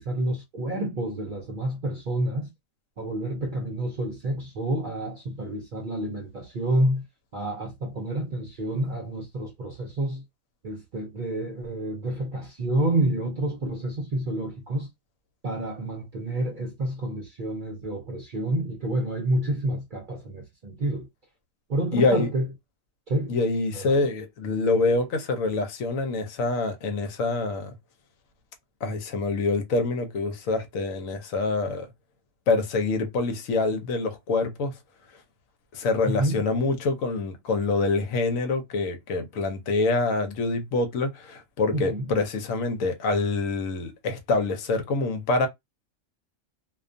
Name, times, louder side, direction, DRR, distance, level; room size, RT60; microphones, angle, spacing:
voice 1, 0.0-2.5 3.0-7.0 7.3-10.2 10.6-14.9 15.4-21.1 21.7-22.5 23.1-23.3 23.7-23.9 36.0-36.4 41.7-42.1, right 1 dB, 55° right, 0.6 m, -29 dB
voice 2, 21.9-22.3 23.3-27.7 28.8-31.9 32.5-34.7 35.7-45.5, left 3 dB, 75° left, 1.0 m, -26 dB
2.4 x 2.3 x 2.5 m
omnidirectional pair, 1.4 m